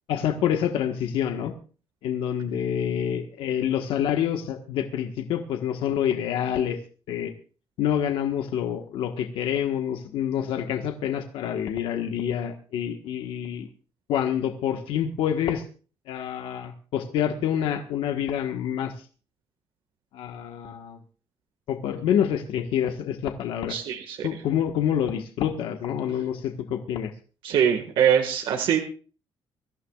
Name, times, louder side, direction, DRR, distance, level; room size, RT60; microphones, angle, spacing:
voice 1, 0.1-1.5 2.0-6.8 7.1-7.3 7.8-13.7 14.1-15.6 16.1-18.9 20.1-21.0 21.7-23.8 24.2-27.1, left 9 dB, 90° left, 5 dB, 1.5 m, -27 dB
voice 2, 23.7-24.3 27.4-28.8, right 8 dB, 70° right, 4 dB, 1.8 m, -23 dB
24.0 x 14.5 x 2.4 m, 0.38 s
cardioid pair, 165°, 9 cm